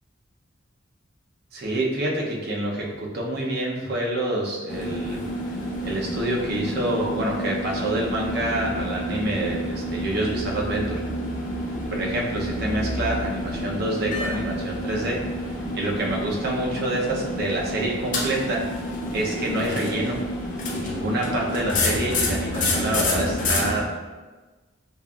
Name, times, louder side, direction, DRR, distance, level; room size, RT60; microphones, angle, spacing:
voice 1, 1.5-5.2 5.8-11.0 12.0-15.2 15.7-18.6 19.1-20.2 20.7-23.9, right 1 dB, 55° right, -2 dB, 0.6 m, -27 dB
sound 1, 4.7-23.7, left 1 dB, 40° left, 0.6 m, -29 dB
5.1 x 2.5 x 2.3 m, 1.3 s
head